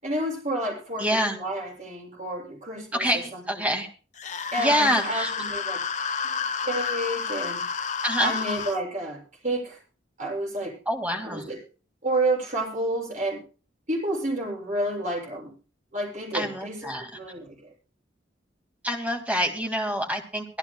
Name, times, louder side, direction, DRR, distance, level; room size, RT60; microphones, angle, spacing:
voice 1, 0.0-3.7 4.5-5.8 6.2-7.6 8.2-9.8 10.2-10.7 11.2-11.6 12.0-13.4 13.9-15.5 15.9-17.7, right 1 dB, 40° right, -1 dB, 7.5 m, -30 dB
voice 2, 1.0-1.4 2.9-3.9 4.6-5.3 8.0-8.4 10.9-11.5 16.3-17.1 18.8-20.5, equal, 10° right, 3 dB, 2.1 m, -26 dB
sound 1, 4.2-8.8, left 5 dB, 40° left, 0.7 m, -30 dB
24.5 x 13.0 x 2.3 m, 0.37 s
head